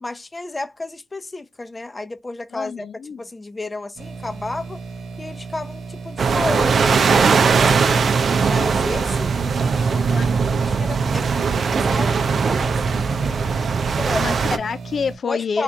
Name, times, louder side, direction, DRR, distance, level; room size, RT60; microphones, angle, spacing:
voice 1, 0.0-2.9 3.2-4.8 5.2-7.8 8.4-13.5 13.9-14.3 15.3-15.6, left 2 dB, 30° left, 0.7 m, -32 dB
voice 2, 2.5-3.2 10.1-10.3 14.2-15.6, left 6 dB, 60° left, 0.4 m, -27 dB
sound 1, 4.0-15.2, right 4 dB, 90° right, 1.0 m, -35 dB
sound 2, 6.2-14.6, right 5 dB, 65° right, 0.6 m, -19 dB
3.5 x 2.6 x 3.6 m
supercardioid pair, 50°, 0 cm